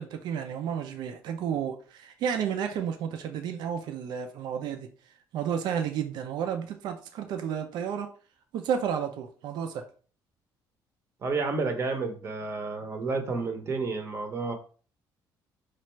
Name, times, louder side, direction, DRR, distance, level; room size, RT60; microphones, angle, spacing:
voice 1, 0.0-4.9 5.3-8.1 8.5-9.8, right 8 dB, 70° right, 0.5 m, -31 dB
voice 2, 11.2-14.5, right 4 dB, 35° right, 0.7 m, -30 dB
3.1 x 2.4 x 4.4 m
cardioid pair, 145°, 8 cm